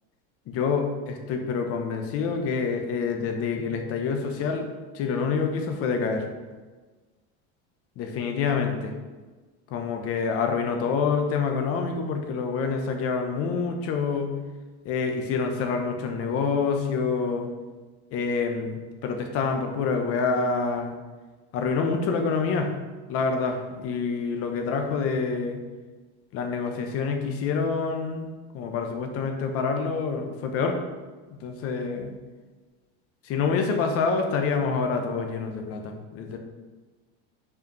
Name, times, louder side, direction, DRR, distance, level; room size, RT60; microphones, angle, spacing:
voice 1, 0.5-4.7 4.9-6.3 8.0-8.9 9.7-14.3 14.8-17.5 18.1-20.9 21.5-22.7 23.1-25.6 26.3-30.8 31.4-32.1 33.3-36.4, left 5 dB, 45° left, 4 dB, 1.0 m, -27 dB
5.6 x 4.9 x 5.3 m, 1.3 s
supercardioid pair, 150°, 34 cm